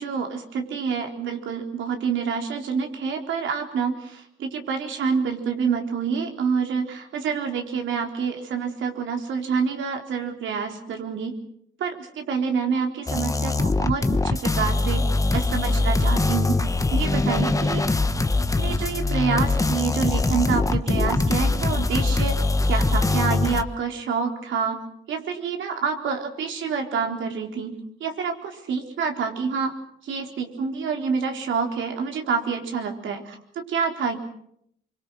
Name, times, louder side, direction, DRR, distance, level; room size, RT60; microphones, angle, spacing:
voice 1, 0.0-11.4 11.8-15.1 15.3-16.6 16.9-18.0 18.6-22.4 22.7-24.8 25.1-29.7 30.0-34.2, right 6 dB, 75° right, 3 dB, 4.1 m, -27 dB
sound 1, 13.1-23.6, left 3 dB, 15° left, 1.3 m, -22 dB
25.0 x 24.5 x 6.4 m, 0.71 s
cardioid pair, 90°, 20 cm